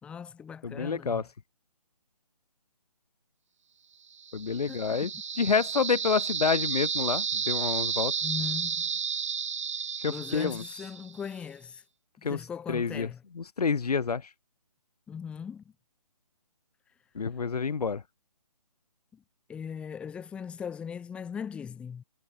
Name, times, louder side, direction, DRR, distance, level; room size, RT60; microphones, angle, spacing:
voice 1, 0.0-1.2 4.7-5.1 8.2-8.9 10.1-11.8 12.2-13.2 15.1-15.6 19.1-19.2 19.5-22.0, left 7 dB, 5° left, 1.3 m, -39 dB
voice 2, 0.6-1.2 4.3-5.1 5.4-8.1 10.0-10.6 12.2-12.4 12.7-13.1 13.4-14.2 17.1-18.0, left 5 dB, 80° left, 1.0 m, -28 dB
sound 1, 4.2-11.2, right 7 dB, 50° right, 2.4 m, -32 dB
hypercardioid pair, 160°, 20 cm